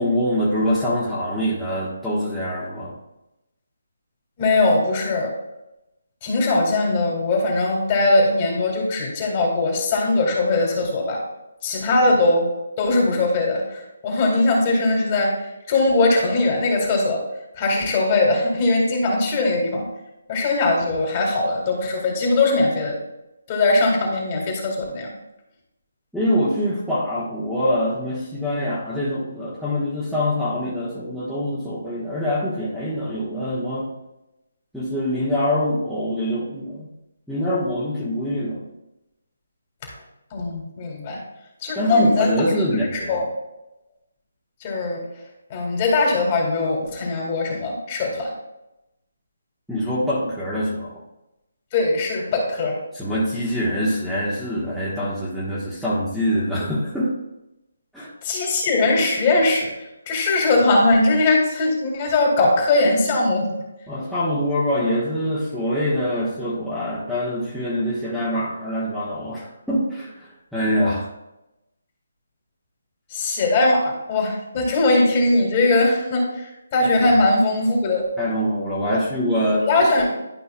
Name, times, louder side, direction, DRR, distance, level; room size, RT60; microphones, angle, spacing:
voice 1, 0.0-2.9 26.1-33.9 34.7-36.9 37.3-38.6 41.7-43.2 49.7-51.0 52.9-57.1 57.9-58.1 63.9-71.1 77.0-77.1 78.2-79.6, equal, ahead, -12 dB, 1.3 m, -24 dB
voice 2, 4.4-5.3 6.2-11.2 11.6-12.5 12.8-17.2 17.6-19.8 20.3-23.0 23.5-25.1 40.3-41.2 41.6-42.3 42.9-43.2 44.6-45.0 45.5-48.3 51.7-52.8 58.2-59.7 60.1-63.5 73.1-78.0 79.5-80.1, left 2 dB, 30° left, -1 dB, 2.1 m, -20 dB
11.5 x 5.3 x 2.3 m, 0.92 s
figure-of-eight pair, 150°, 0 cm